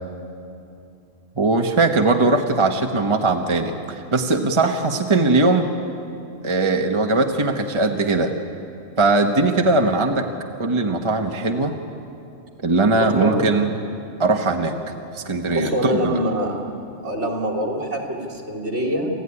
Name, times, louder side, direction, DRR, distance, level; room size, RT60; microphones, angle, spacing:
voice 1, 1.4-5.7 6.4-8.3 9.0-10.3 10.6-11.7 12.6-13.7 14.2-14.8 15.1-16.2, right 3 dB, 25° right, 3 dB, 1.1 m, -20 dB
voice 2, 12.9-13.4 15.5-16.6 17.0-19.1, equal, 60° right, 1 dB, 3.0 m, -24 dB
28.0 x 14.5 x 9.8 m, 2.7 s
omnidirectional pair, 1.3 m